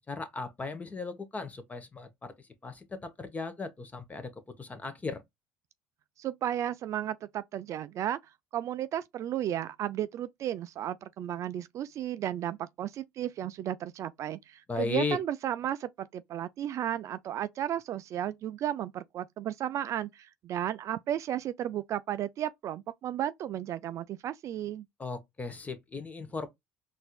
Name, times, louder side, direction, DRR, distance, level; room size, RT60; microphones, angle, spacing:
voice 1, 0.0-2.3 2.6-4.3 4.6-5.2 14.7-15.2 25.0-26.5, left 3 dB, 20° left, 1.0 m, -36 dB
voice 2, 6.2-8.2 8.5-24.8, right 11 dB, 50° right, 0.3 m, -34 dB
4.1 x 2.5 x 2.3 m
hypercardioid pair, 75°, 7 cm